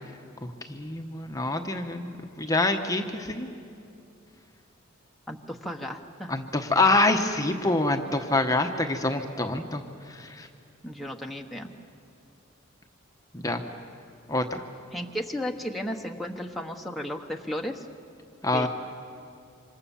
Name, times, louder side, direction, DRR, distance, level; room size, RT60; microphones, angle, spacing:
voice 1, 0.4-3.5 6.3-9.8 10.1-10.5 13.3-13.6 14.3-14.6 18.4-18.7, left 2 dB, 15° left, 5 dB, 1.1 m, -26 dB
voice 2, 5.3-6.3 10.8-11.7 14.9-17.9 18.5-18.7, equal, ahead, 4 dB, 1.1 m, -34 dB
26.5 x 26.0 x 7.1 m, 2.5 s
head